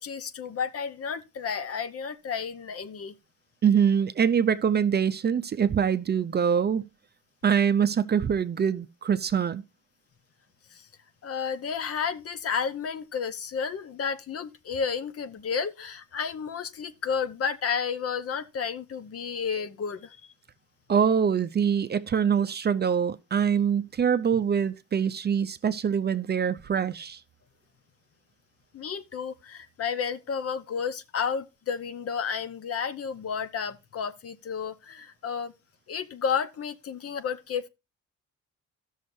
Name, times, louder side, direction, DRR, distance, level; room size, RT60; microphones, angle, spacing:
voice 1, 0.0-3.1 10.7-10.8 11.2-20.2 28.7-35.5 35.9-37.7, left 6 dB, 50° left, 0.8 m, -32 dB
voice 2, 3.6-6.9 7.4-9.6 20.9-27.2, right 7 dB, 35° right, 0.5 m, -24 dB
15.5 x 6.4 x 2.6 m
cardioid pair, 90°, 30 cm